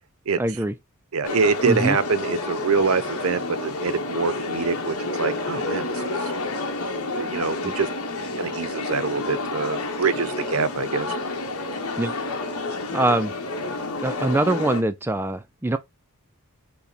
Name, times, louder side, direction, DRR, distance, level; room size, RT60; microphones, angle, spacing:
voice 1, 0.4-0.7 1.7-2.0 7.6-7.7 12.0-12.1 12.9-13.3 14.0-15.8, right 2 dB, 10° right, 0.3 m, -23 dB
voice 2, 1.1-6.3 7.1-7.9 8.4-11.1, right 5 dB, 70° right, 0.6 m, -25 dB
sound 1, 1.2-14.8, left 2 dB, 75° left, 1.2 m, -29 dB
5.6 x 2.2 x 4.1 m
head